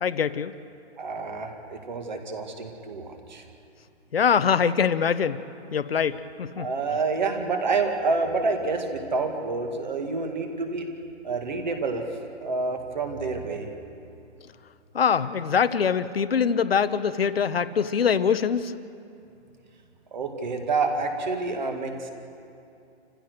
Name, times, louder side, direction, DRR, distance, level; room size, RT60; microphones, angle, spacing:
voice 1, 0.0-0.5 4.1-5.4 5.7-6.7 14.9-18.7, left 7 dB, 60° left, 13 dB, 0.9 m, -23 dB
voice 2, 1.0-3.4 6.6-10.9 11.2-12.1 12.4-13.7 20.1-22.1, right 3 dB, 40° right, 4 dB, 2.1 m, -28 dB
29.0 x 15.5 x 6.6 m, 2.5 s
hypercardioid pair, 180°, 34 cm